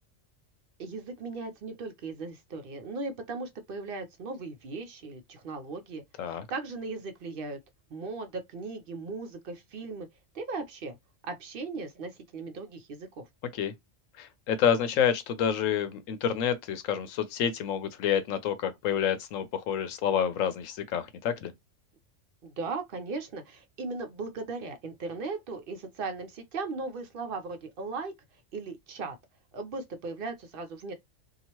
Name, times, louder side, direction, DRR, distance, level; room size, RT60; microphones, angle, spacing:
voice 1, 0.8-6.0 6.5-7.6 7.9-10.1 10.3-11.0 11.2-13.2 22.4-28.1 28.5-29.2 29.5-30.9, right 3 dB, 60° right, 0.6 m, -37 dB
voice 2, 14.2-21.5, left 8 dB, 90° left, 1.0 m, -28 dB
2.8 x 2.4 x 2.9 m
omnidirectional pair, 1.3 m